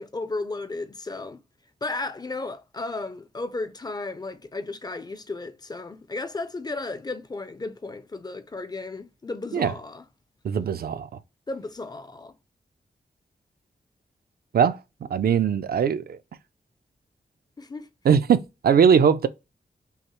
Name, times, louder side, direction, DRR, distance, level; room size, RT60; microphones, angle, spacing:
voice 1, 0.0-1.4 1.8-10.1 11.5-12.3 17.6-17.9, left 3 dB, 25° left, 0.4 m, -34 dB
voice 2, 10.4-11.1 14.5-14.8 15.1-16.2 18.0-19.3, right 7 dB, 70° right, 0.4 m, -20 dB
5.6 x 2.0 x 2.9 m
wide cardioid pair, 160°, 16 cm